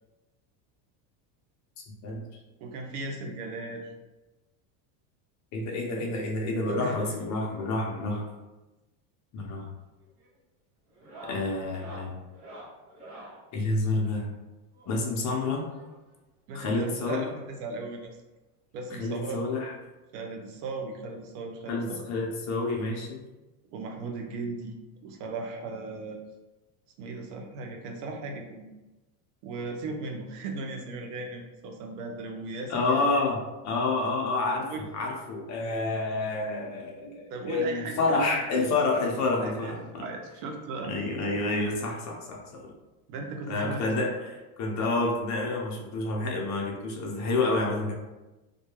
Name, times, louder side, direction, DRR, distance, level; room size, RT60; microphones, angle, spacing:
voice 1, 1.9-2.2 5.5-8.2 9.3-9.6 11.2-12.2 13.5-14.3 14.9-15.7 16.5-17.3 18.9-19.7 21.7-23.2 32.7-33.4 33.6-40.0 40.8-42.7 43.5-47.9, left 3 dB, 40° left, 0 dB, 0.6 m, -29 dB
voice 2, 2.6-3.9 6.8-7.0 16.5-18.2 18.7-19.4 20.1-22.0 23.7-24.7 25.0-26.2 27.0-28.7 29.4-33.2 34.7-34.8 37.3-38.4 39.4-40.9 43.1-43.9, right 3 dB, 85° right, 3 dB, 0.7 m, -37 dB
sound 1, 9.4-9.7 10.0-10.3 10.9-13.4 14.7-16.1 17.2-17.3 17.5-17.6 18.0-18.1 19.4-19.5 20.9-21.0, right 2 dB, 55° right, 1.0 m, -48 dB
2.3 x 2.2 x 3.0 m, 1.1 s
supercardioid pair, 125°, 46 cm